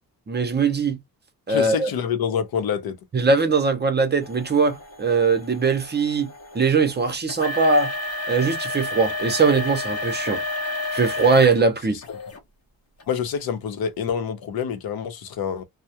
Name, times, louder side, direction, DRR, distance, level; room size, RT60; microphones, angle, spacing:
voice 1, 0.3-1.0 1.5-1.9 3.1-6.3 6.5-7.9 8.3-10.4 10.9-12.0, right 4 dB, 30° right, 0.6 m, -21 dB
voice 2, 1.5-3.0 12.1-12.2 13.1-15.6, left 7 dB, 75° left, 0.7 m, -27 dB
sound 1, 4.2-11.6 12.0-12.4 13.0-13.1 13.8-13.9, left 2 dB, 40° left, 0.8 m, -31 dB
2.2 x 2.1 x 2.8 m
wide cardioid pair, 135°, 37 cm